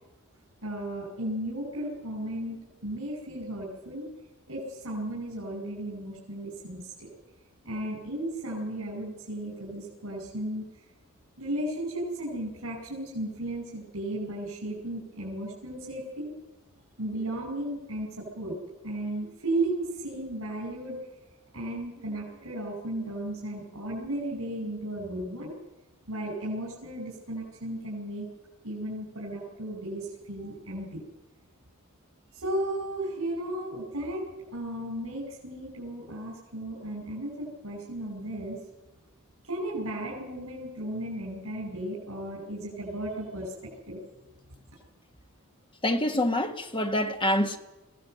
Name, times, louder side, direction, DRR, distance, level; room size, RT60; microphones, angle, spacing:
voice 1, 0.6-4.1 4.5-7.1 7.6-10.7 11.4-16.3 17.0-18.6 18.8-21.1 21.5-25.6 26.1-28.3 28.6-31.0 32.3-34.2 34.5-38.6 39.5-43.5 43.9-44.0, right 1 dB, 75° right, 5.3 m, -35 dB
voice 2, 45.8-47.6, left 1 dB, 25° left, 1.4 m, -26 dB
22.5 x 15.5 x 7.7 m
head